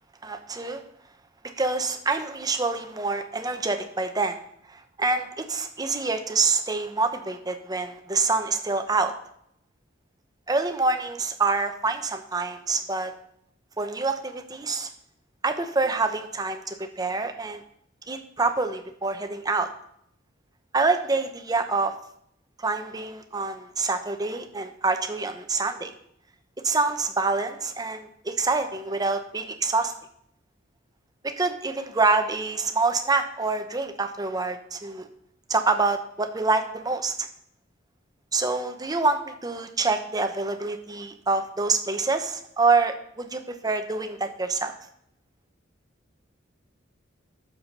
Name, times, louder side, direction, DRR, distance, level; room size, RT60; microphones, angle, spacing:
voice 1, 0.2-0.8 1.4-4.4 4.7-9.1 10.5-13.1 13.8-14.9 15.4-17.6 18.1-19.7 20.7-21.9 22.6-25.9 26.6-29.9 31.2-35.1 35.5-37.3 38.3-44.7, right 3 dB, 20° right, 6 dB, 0.8 m, -26 dB
8.6 x 7.1 x 5.3 m, 0.71 s
head